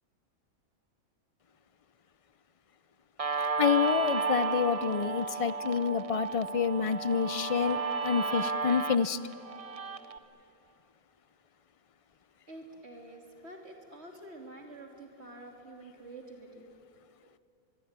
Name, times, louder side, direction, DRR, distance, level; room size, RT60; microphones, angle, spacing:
Guitar, 3.2-10.2, right 4 dB, 30° right, 0.8 m, -33 dB
voice 1, 3.6-9.2, left 7 dB, 40° left, 15 dB, 0.5 m, -28 dB
voice 2, 12.5-16.7, right 2 dB, 50° right, 2 dB, 3.4 m, -48 dB
25.0 x 21.5 x 9.7 m, 2.8 s
omnidirectional pair, 1.5 m